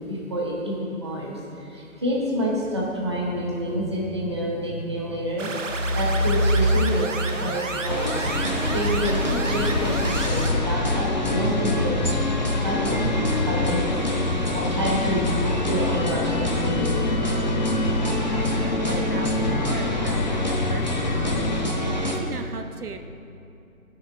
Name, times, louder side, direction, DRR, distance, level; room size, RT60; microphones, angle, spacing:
voice 1, 0.0-8.1 8.7-12.3 12.6-13.0 13.4-13.8 14.5-17.0, equal, 20° right, -4 dB, 0.7 m, -27 dB
sound 1, 5.4-10.5, right 3 dB, 60° right, 1.0 m, -31 dB
sound 2, 7.9-22.2, equal, 30° left, 0.5 m, -25 dB
sound 3, 9.6-21.7, left 8 dB, 85° left, 0.5 m, -31 dB
voice 2, 18.3-23.0, right 4 dB, 80° right, 7 dB, 0.9 m, -37 dB
12.5 x 6.4 x 3.5 m, 2.6 s
figure-of-eight pair, 160°, 44 cm